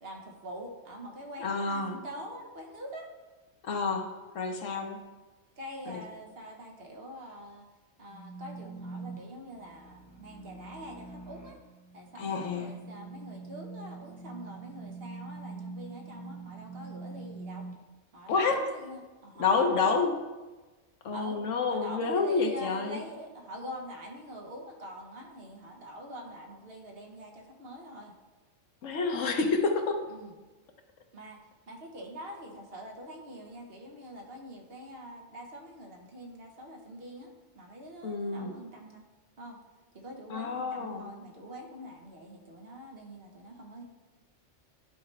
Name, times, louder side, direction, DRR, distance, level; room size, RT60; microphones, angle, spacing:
voice 1, 0.0-3.1 5.6-7.7 8.0-11.6 11.9-17.6 18.1-20.1 21.1-21.4 21.7-28.1 30.1-30.3 31.1-39.0 39.4-39.6 39.9-43.8, equal, 55° right, 1 dB, 1.3 m, -45 dB
voice 2, 1.4-2.0 3.6-4.1 4.3-5.0 5.9-6.0 12.1-12.7 18.3-18.7 19.4-20.2 21.0-23.0 28.8-30.0 38.0-38.5 40.3-41.1, left 4 dB, 80° left, 4 dB, 1.2 m, -29 dB
sound 1, 8.1-17.7, right 4 dB, 5° left, 1.0 m, -44 dB
11.5 x 4.7 x 3.3 m, 1.2 s
omnidirectional pair, 1.3 m